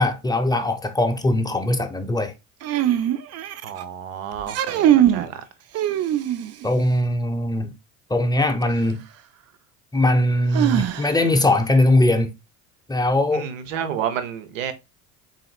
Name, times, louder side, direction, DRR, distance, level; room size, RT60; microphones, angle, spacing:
voice 1, 0.0-2.3 6.6-7.7 8.1-9.0 9.9-12.3 12.9-13.5, left 1 dB, 10° left, 0.8 m, -20 dB
sound 1, 2.6-3.8 4.4-5.3 5.7-6.7 8.6-8.7 10.5-11.4, right 11 dB, 40° right, 0.5 m, -21 dB
voice 2, 3.6-5.4 13.3-14.7, right 8 dB, 85° right, 0.9 m, -30 dB
4.1 x 4.0 x 2.3 m
hypercardioid pair, 80°, 38 cm